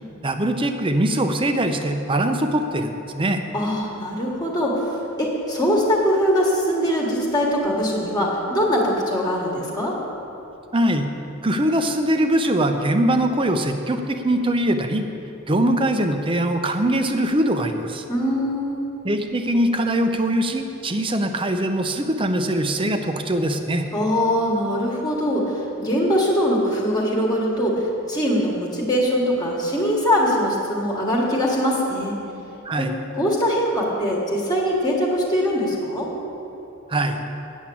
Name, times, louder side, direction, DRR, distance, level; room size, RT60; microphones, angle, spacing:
voice 1, 0.2-3.4 10.7-11.0 11.4-15.1 15.5-18.0 19.0-23.9 32.6-32.9 36.9-37.2, right 1 dB, 25° right, 7 dB, 0.6 m, -22 dB
voice 2, 3.5-10.0 18.1-18.8 23.9-32.1 32.8-32.9 33.1-36.1, equal, 20° left, -3 dB, 1.5 m, -22 dB
9.1 x 7.3 x 8.5 m, 2.9 s
head